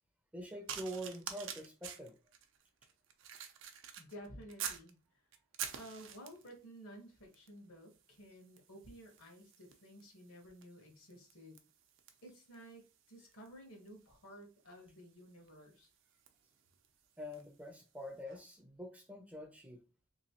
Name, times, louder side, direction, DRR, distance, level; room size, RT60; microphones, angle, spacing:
voice 1, 0.3-2.1 17.2-19.8, equal, 5° right, 3 dB, 0.5 m, -45 dB
sound 1, 0.7-4.9 5.3-6.6 7.3-7.6 7.9-17.6 18.3-18.4, right 8 dB, 60° right, 0.5 m, -49 dB
voice 2, 4.0-5.0 5.8-11.6 12.2-15.9, equal, 70° left, 2 dB, 1.3 m, -54 dB
3.1 x 3.0 x 2.9 m, 0.32 s
head